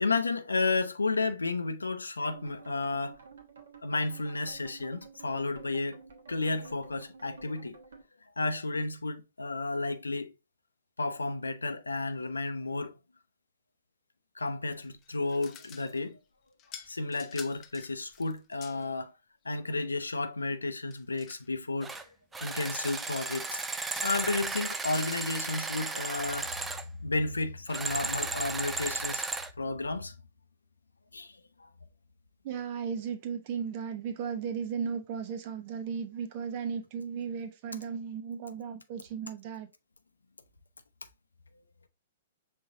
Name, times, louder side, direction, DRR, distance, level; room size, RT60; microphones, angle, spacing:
voice 1, 0.0-3.2 3.8-6.0 6.3-7.8 8.4-10.3 11.0-13.0 14.4-16.2 16.9-19.1 19.4-21.9 22.4-23.6 24.0-26.5 27.0-29.2 29.6-30.1 31.1-31.7, left 3 dB, 85° left, 0.5 m, -32 dB
sound 1, 2.3-8.0, right 5 dB, 70° right, 1.2 m, -51 dB
sound 2, 14.8-16.1 16.6-18.9 20.9-21.5 22.6-25.5, left 9 dB, 30° left, 0.6 m, -50 dB
sound 3, 21.8-22.0 22.3-26.8 27.7-29.5, right 3 dB, 10° right, 0.5 m, -35 dB
voice 2, 32.4-39.7, right 6 dB, 45° right, 0.8 m, -35 dB
5.3 x 3.6 x 2.6 m
figure-of-eight pair, 115°, 0 cm